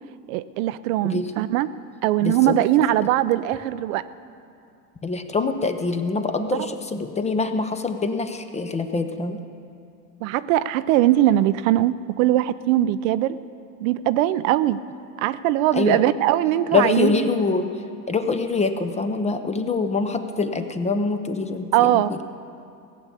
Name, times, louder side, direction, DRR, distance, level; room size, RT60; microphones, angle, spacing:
voice 1, 0.3-1.7 2.0-4.0 10.2-13.4 13.8-14.8 15.2-17.3 21.7-22.1, right 13 dB, 55° right, 14 dB, 0.6 m, -21 dB
voice 2, 5.0-9.4 15.7-16.1 16.7-17.7 18.1-22.2, left 4 dB, 15° left, 8 dB, 0.6 m, -24 dB
17.5 x 6.9 x 8.4 m, 2.5 s
hypercardioid pair, 105°, 48 cm